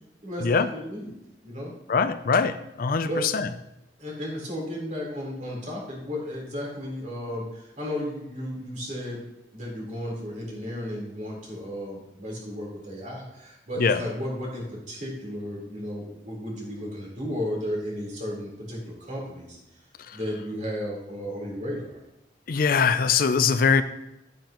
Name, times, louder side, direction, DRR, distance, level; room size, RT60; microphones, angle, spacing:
voice 1, 0.2-1.1 1.4-1.7 3.0-3.3 4.0-9.2 9.5-19.6 20.1-22.0, equal, 45° right, -3 dB, 4.0 m, -34 dB
voice 2, 1.9-3.1 3.3-3.5 13.8-14.0 22.5-23.8, left 5 dB, 55° left, 12 dB, 0.5 m, -22 dB
11.0 x 9.1 x 3.0 m, 0.88 s
head